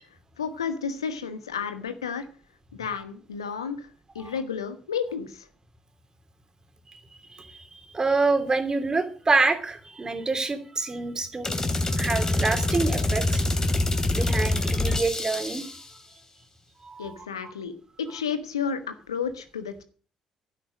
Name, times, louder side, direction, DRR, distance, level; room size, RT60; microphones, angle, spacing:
voice 1, 0.4-2.3 2.7-3.9 4.1-5.5 17.0-17.7 18.0-19.8, left 6 dB, 90° left, 10 dB, 1.3 m, -31 dB
voice 2, 7.3-11.5 11.9-15.7 16.8-17.5, right 3 dB, 30° right, 8 dB, 2.8 m, -27 dB
sound 1, 11.4-15.9, left 2 dB, 25° left, 2.8 m, -25 dB
12.0 x 9.9 x 6.2 m, 0.41 s
hypercardioid pair, 45°, 3 cm